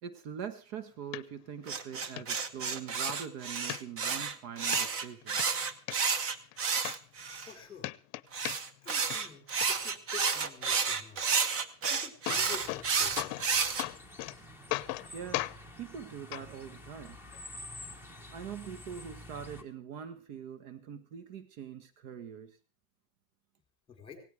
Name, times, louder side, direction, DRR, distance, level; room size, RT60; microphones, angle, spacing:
voice 1, 0.0-5.4 15.1-15.5 15.8-17.2 18.3-22.6, right 8 dB, 65° right, 11 dB, 1.6 m, -43 dB
sound 1, 1.1-1.2 1.7-1.8 2.2-2.3 2.7-3.2 3.7-4.3 4.7-4.8 5.2-6.0 6.5-6.6 6.8-7.5 7.8-8.8 9.1-9.7 11.7-11.8 12.0-12.9 13.2-13.5 13.8-14.3 14.7-15.1 15.3-15.6 16.3-16.4 17.3-17.4, left 21 dB, 50° left, 0.7 m, -36 dB
sound 2, 1.7-7.5 8.3-13.8, right 5 dB, 30° right, 1.0 m, -31 dB
voice 2, 7.4-7.9 8.8-11.2 11.9-13.4 23.9-24.2, left 6 dB, 10° left, 4 dB, 4.3 m, -49 dB
sound 3, 12.3-19.6, left 1 dB, 5° right, 1.3 m, -49 dB
17.5 x 17.0 x 3.5 m, 0.33 s
supercardioid pair, 150°, 44 cm